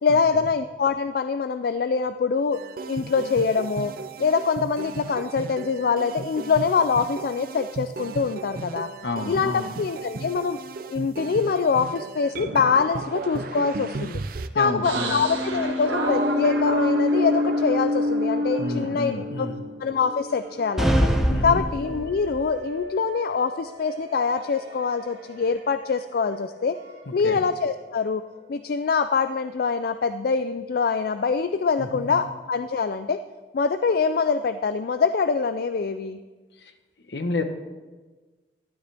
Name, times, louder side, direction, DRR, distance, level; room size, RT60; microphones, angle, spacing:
voice 1, 0.0-2.6 2.9-3.9 4.2-8.9 9.3-10.6 10.9-14.2 14.5-19.5 19.8-21.1 21.4-26.8 27.1-28.2 28.5-33.2 33.5-36.2, left 5 dB, 55° left, 10 dB, 0.4 m, -24 dB
sound 1, 2.5-14.5, right 3 dB, 50° right, 0.5 m, -35 dB
voice 2, 9.0-9.7 14.5-15.2 18.6-19.6 21.3-21.6 27.1-27.4 31.8-32.2 37.1-37.4, left 2 dB, 70° left, 7 dB, 1.0 m, -30 dB
sound 2, 14.8-20.8 21.2-25.4 25.7-28.3, left 1 dB, 80° right, 1.8 m, -29 dB
sound 3, 20.8-22.4, equal, ahead, 0.8 m, -23 dB
12.5 x 12.0 x 3.4 m, 1.3 s
head